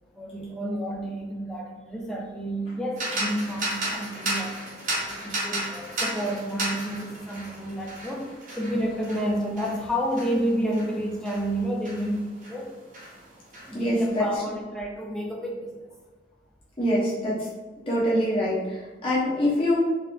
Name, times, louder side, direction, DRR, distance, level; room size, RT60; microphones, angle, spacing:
voice 1, 0.1-4.6 5.0-12.8 13.7-15.9, equal, 5° left, -1 dB, 0.3 m, -30 dB
sound 1, 3.0-12.6 12.9-14.2, right 1 dB, 45° right, 0.7 m, -34 dB
voice 2, 13.7-14.3 16.8-17.5 17.9-19.8, equal, 30° left, -8 dB, 1.0 m, -24 dB
3.9 x 2.0 x 2.7 m, 1.3 s
head